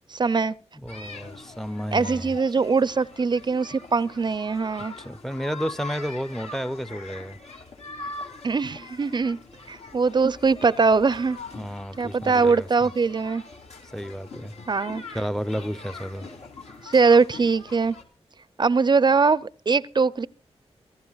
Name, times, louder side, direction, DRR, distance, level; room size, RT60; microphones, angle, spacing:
voice 1, 0.1-0.5 1.9-4.9 8.4-9.4 9.7-11.4 12.0-13.4 14.7-15.0 16.8-18.0 18.6-20.3, right 4 dB, 40° right, 0.5 m, -22 dB
voice 2, 0.8-2.3 5.0-7.4 11.6-12.7 13.9-14.5 15.1-16.3, equal, 5° left, 0.6 m, -31 dB
sound 1, 0.9-18.0, left 3 dB, 75° left, 2.7 m, -42 dB
26.0 x 12.5 x 2.3 m
wide cardioid pair, 80°, 11 cm